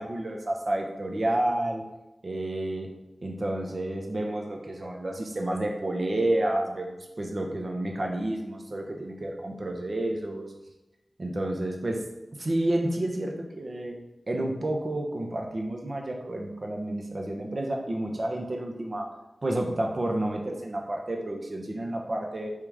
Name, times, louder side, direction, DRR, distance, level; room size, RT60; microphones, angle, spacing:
voice 1, 0.0-1.8 2.2-2.9 3.2-10.5 11.2-12.0 12.4-14.0 14.3-19.1 19.4-22.5, right 1 dB, 50° right, 2 dB, 0.7 m, -30 dB
3.6 x 2.8 x 4.7 m, 0.97 s
wide cardioid pair, 70°, 0 cm